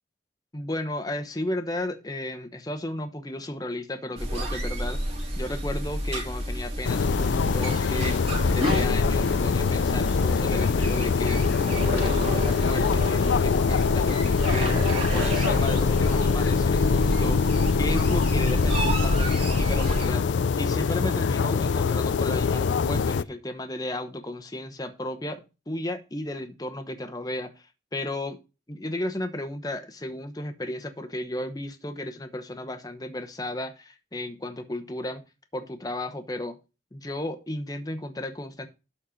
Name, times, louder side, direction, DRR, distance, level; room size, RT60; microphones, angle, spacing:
voice 1, 0.5-5.0 5.4-14.8 15.1-17.4 17.8-28.4 28.7-35.2 35.5-36.6 36.9-38.7, left 1 dB, 20° left, 0.9 m, -34 dB
sound 1, 4.2-20.1, equal, 35° right, 2.6 m, -29 dB
sound 2, 6.8-23.2, left 5 dB, 80° left, 0.4 m, -24 dB
11.5 x 4.3 x 5.1 m
head